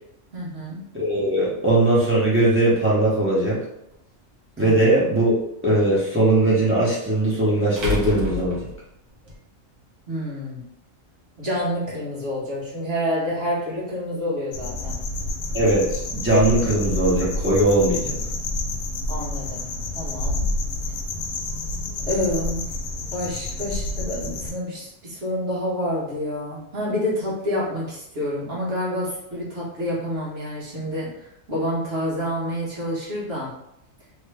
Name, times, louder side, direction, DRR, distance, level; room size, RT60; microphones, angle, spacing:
voice 1, 0.3-0.8 4.6-4.8 10.1-10.6 11.4-15.0 19.1-19.7 19.9-20.5 22.1-22.7 23.1-33.5, equal, 50° right, -7 dB, 1.5 m, -28 dB
voice 2, 0.9-3.6 4.6-5.4 5.6-8.7 15.5-18.2, right 1 dB, 15° right, -6 dB, 0.6 m, -20 dB
sound 1, 3.9-4.0 6.6-6.7 7.8-9.4, left 4 dB, 90° right, 1.3 m, -29 dB
sound 2, 14.5-24.5, left 2 dB, 80° left, 1.0 m, -29 dB
3.2 x 2.2 x 3.2 m, 0.81 s
omnidirectional pair, 1.4 m